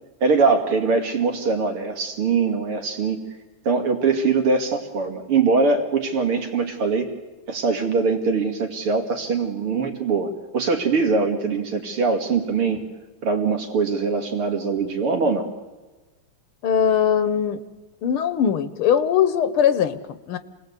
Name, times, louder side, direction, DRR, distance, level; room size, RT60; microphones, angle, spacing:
voice 1, 0.2-3.2 3.7-7.1 7.5-12.8 13.2-15.5, right 4 dB, 90° right, 4 dB, 3.4 m, -22 dB
voice 2, 16.6-17.6 18.0-20.4, left 8 dB, 80° left, 13 dB, 1.8 m, -20 dB
27.5 x 19.5 x 8.2 m, 1.2 s
omnidirectional pair, 2.3 m